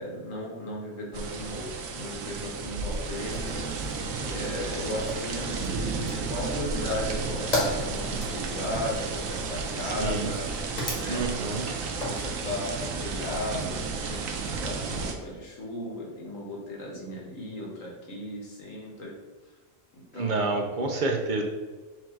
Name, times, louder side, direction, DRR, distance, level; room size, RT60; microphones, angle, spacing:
voice 1, 0.0-3.6 4.3-5.5 6.0-10.4 10.7-11.6 12.0-13.8 14.0-19.1 19.9-20.7, left 1 dB, 75° left, -2 dB, 1.6 m, -36 dB
sound 1, 1.1-15.1, right 4 dB, 85° right, 1.1 m, -32 dB
Fire, 2.9-12.2, left 1 dB, 35° left, 1.2 m, -37 dB
voice 2, 9.8-10.3 11.1-11.8 20.1-21.4, right 3 dB, 55° right, 2 dB, 0.6 m, -28 dB
4.5 x 2.7 x 4.4 m, 1.3 s
omnidirectional pair, 1.4 m